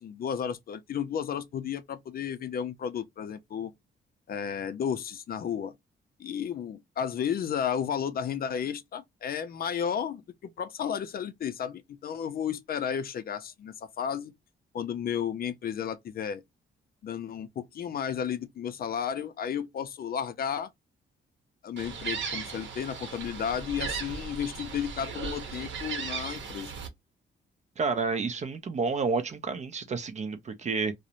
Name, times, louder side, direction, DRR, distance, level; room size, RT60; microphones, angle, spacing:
voice 1, 0.0-3.7 4.3-5.7 6.2-14.3 14.7-16.4 17.0-20.7 21.6-26.8, left 8 dB, 50° left, 0.4 m, -33 dB
Gull seagull, 21.8-26.9, right 5 dB, 70° right, 0.8 m, -37 dB
voice 2, 27.8-30.9, right 4 dB, 35° right, 0.4 m, -30 dB
2.4 x 2.0 x 2.8 m
cardioid pair, 135°, 20 cm